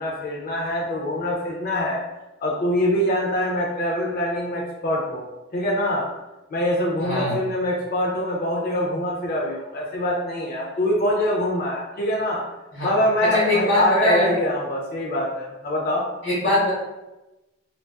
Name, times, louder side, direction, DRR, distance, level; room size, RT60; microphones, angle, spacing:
voice 1, 0.0-2.0 2.4-6.1 6.5-12.4 12.8-16.0, left 1 dB, 50° left, -2 dB, 0.5 m, -24 dB
voice 2, 7.0-7.4 12.7-12.9 13.3-14.3 16.2-16.7, left 1 dB, 70° left, -9 dB, 0.9 m, -21 dB
3.6 x 2.4 x 2.2 m, 1.0 s
head